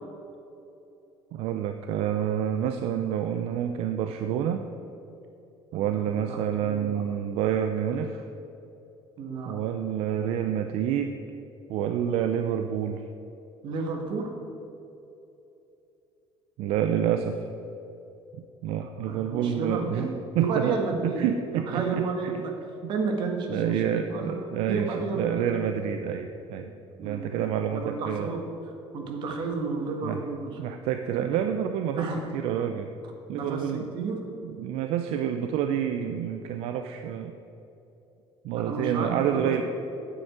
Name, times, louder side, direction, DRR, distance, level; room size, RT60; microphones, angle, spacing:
voice 1, 1.3-4.7 5.7-8.3 9.4-11.2 11.7-13.0 16.6-17.5 18.6-20.1 20.3-22.4 22.8-22.9 23.5-26.7 27.0-28.3 30.0-30.2 30.6-32.9 33.3-33.9 34.4-37.4 38.4-39.6, right 9 dB, 70° right, 7 dB, 0.6 m, -28 dB
voice 2, 5.7-7.0 9.2-9.6 13.6-14.3 19.0-20.1 20.4-21.2 21.5-22.5 22.9-23.8 24.1-25.6 27.0-27.4 27.7-28.4 28.9-30.5 32.0-32.2 33.4-33.6 33.9-34.2 38.6-39.6, right 4 dB, 50° right, 3 dB, 1.8 m, -31 dB
9.9 x 8.0 x 8.8 m, 2.9 s
cardioid pair, 180°, 10 cm